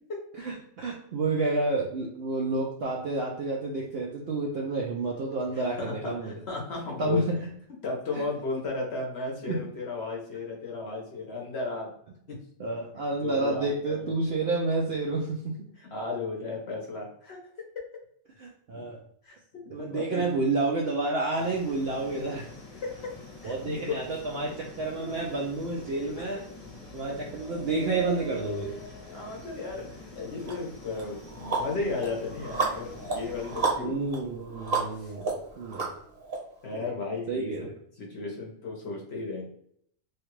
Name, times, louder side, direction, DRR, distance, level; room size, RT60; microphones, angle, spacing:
voice 1, 0.4-6.3 7.0-7.4 8.1-8.2 9.5-9.6 12.6-15.6 18.4-19.0 19.7-22.5 23.4-26.4 26.9-28.7 33.8-35.9 36.7-36.9 37.3-37.7, right 3 dB, 65° right, -2 dB, 0.6 m, -30 dB
voice 2, 5.6-7.3 7.8-11.9 12.3-12.4 13.2-14.3 15.8-17.4 19.2-20.2 22.8-23.1 23.4-23.9 25.0-25.5 26.2-26.3 29.1-34.0 34.9-35.1 36.6-37.7 38.0-39.4, left 3 dB, 55° left, -1 dB, 0.9 m, -35 dB
sound 1, 21.3-33.7, left 3 dB, 35° left, 1.1 m, -46 dB
sound 2, 30.5-30.6 31.0-36.4, right 4 dB, 50° right, 1.0 m, -32 dB
3.2 x 2.3 x 3.0 m, 0.66 s
omnidirectional pair, 1.5 m